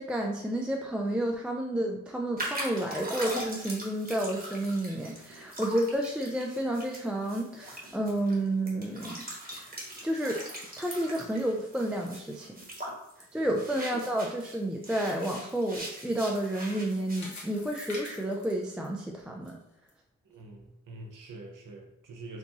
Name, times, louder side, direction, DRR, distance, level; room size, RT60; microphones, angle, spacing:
voice 1, 0.0-9.2 9.5-9.7 10.0-10.4 10.8-12.5 13.3-19.6, right 1 dB, 5° right, 1 dB, 0.3 m, -30 dB
sound 1, 2.4-14.6 14.8-17.4, right 1 dB, 30° right, 1.1 m, -41 dB
sound 2, 14.7-19.5 19.9-20.0 20.6-20.7, left 2 dB, 60° left, 1.1 m, -47 dB
voice 2, 20.2-22.4, right 2 dB, 75° right, 2 dB, 0.7 m, -45 dB
4.5 x 2.6 x 2.8 m, 0.79 s
cardioid pair, 85°, 32 cm